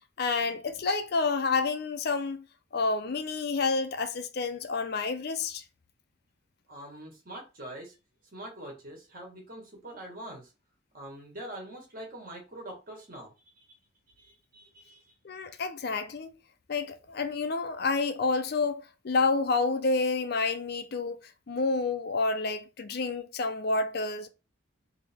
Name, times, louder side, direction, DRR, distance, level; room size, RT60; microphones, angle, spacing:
voice 1, 0.2-2.4 2.7-5.6 15.2-16.3 16.7-21.2 21.5-24.3, left 3 dB, 55° left, 0.5 m, -29 dB
voice 2, 6.7-7.9 8.3-10.5 10.9-13.6 14.2-15.0, right 1 dB, 45° right, 1.5 m, -44 dB
3.4 x 2.8 x 3.4 m
head